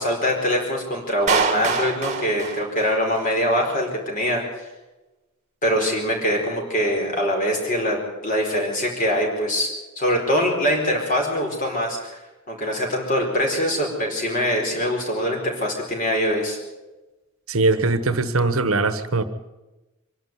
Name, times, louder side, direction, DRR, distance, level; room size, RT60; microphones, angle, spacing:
voice 1, 0.0-4.4 5.6-9.7 10.0-12.2 12.5-16.6, equal, 35° left, 1 dB, 4.6 m, -23 dB
Clapping, 1.3-3.3, right 4 dB, 30° right, 1.6 m, -25 dB
voice 2, 17.5-19.2, right 3 dB, 70° right, 12 dB, 1.3 m, -21 dB
24.0 x 11.5 x 9.5 m, 1.1 s
head